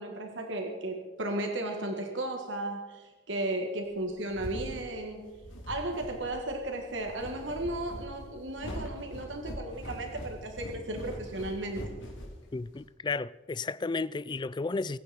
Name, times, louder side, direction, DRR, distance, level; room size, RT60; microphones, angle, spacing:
voice 1, 0.0-5.2 5.7-11.9, right 1 dB, 70° right, 1.9 m, -35 dB
sound 1, 3.9-12.8, equal, 75° left, 3.6 m, -42 dB
voice 2, 12.5-15.0, left 3 dB, 25° left, 0.3 m, -33 dB
23.0 x 9.5 x 4.4 m
head